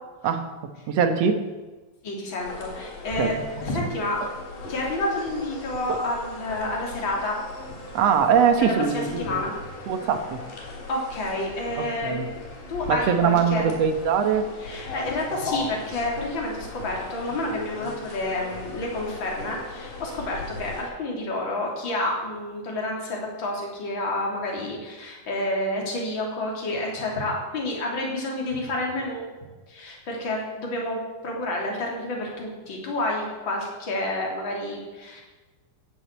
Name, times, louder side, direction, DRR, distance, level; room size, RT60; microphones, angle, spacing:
voice 1, 0.9-1.4 3.2-3.3 4.2-4.3 5.9-6.0 7.9-9.5 9.9-10.4 11.8-12.3 12.9-14.5, right 7 dB, 60° right, 7 dB, 2.1 m, -22 dB
voice 2, 2.0-3.3 3.6-4.2 4.7-7.4 8.6-9.5 10.9-12.2 12.7-13.6 14.6-29.2 29.7-35.2, left 1 dB, 35° left, -1 dB, 3.8 m, -29 dB
sound 1, 2.4-20.8, left 3 dB, 80° left, 5.0 m, -38 dB
15.5 x 8.1 x 8.2 m, 1.2 s
omnidirectional pair, 3.7 m